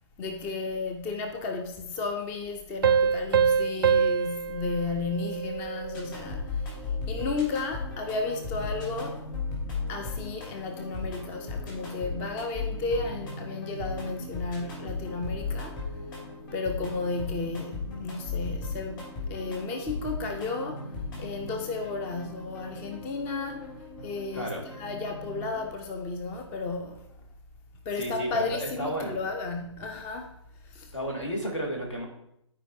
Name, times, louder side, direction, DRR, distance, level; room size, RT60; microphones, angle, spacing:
voice 1, 0.2-6.7 7.1-9.2 9.9-15.9 16.5-20.9 21.2-23.7 24.0-27.1 27.9-30.3 30.6-30.9, left 3 dB, 15° left, 0.4 m, -33 dB
Piano, 2.8-6.1, right 6 dB, 50° right, 0.4 m, -25 dB
sound 1, 5.9-25.6, left 3 dB, 40° left, 3.1 m, -37 dB
voice 2, 24.3-24.7 27.9-29.2 30.9-32.1, right 1 dB, 75° left, 2.3 m, -32 dB
12.5 x 4.7 x 2.6 m
figure-of-eight pair, 130°, 16 cm